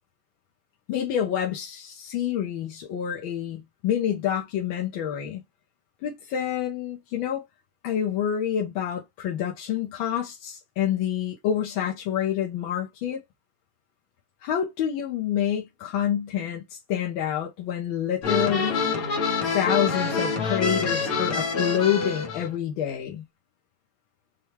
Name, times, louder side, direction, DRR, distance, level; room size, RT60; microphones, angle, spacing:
voice 1, 0.9-5.4 6.0-7.4 7.8-13.2 14.4-18.9 19.5-23.2, left 9 dB, 70° left, 1.5 m, -27 dB
sound 1, 18.2-22.5, left 4 dB, 55° left, 1.1 m, -26 dB
5.7 x 2.3 x 3.2 m
omnidirectional pair, 2.3 m